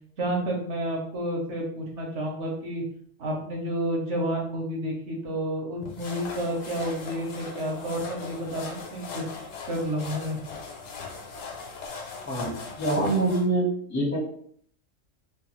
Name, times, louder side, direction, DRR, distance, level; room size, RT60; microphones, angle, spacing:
voice 1, 0.2-2.8 3.2-8.6 8.9-10.4, right 1 dB, 65° right, 0 dB, 1.1 m, -30 dB
sound 1, 5.8-13.4, left 4 dB, 80° left, 1.0 m, -39 dB
voice 2, 12.3-14.2, right 2 dB, 15° left, -4 dB, 0.5 m, -25 dB
2.6 x 2.3 x 3.0 m, 0.62 s
omnidirectional pair, 1.3 m